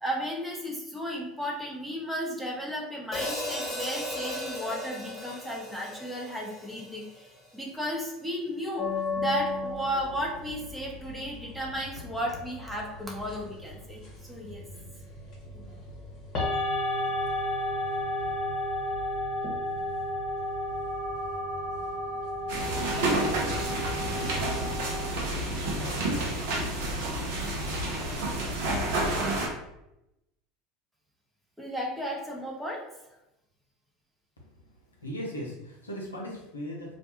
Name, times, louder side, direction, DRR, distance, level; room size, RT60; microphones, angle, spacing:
voice 1, 0.0-8.9 9.2-14.7 31.6-32.8, equal, 5° right, -2 dB, 0.8 m, -34 dB
Hi-hat, 3.1-7.4, left 1 dB, 15° left, 1.3 m, -36 dB
sound 1, 8.8-25.1, left 1 dB, 45° left, 0.9 m, -33 dB
sound 2, 22.5-29.5, right 1 dB, 65° right, 0.7 m, -29 dB
voice 2, 35.0-37.0, equal, 85° left, -2 dB, 0.6 m, -37 dB
2.5 x 2.2 x 2.8 m, 0.87 s
figure-of-eight pair, 75°, 0 cm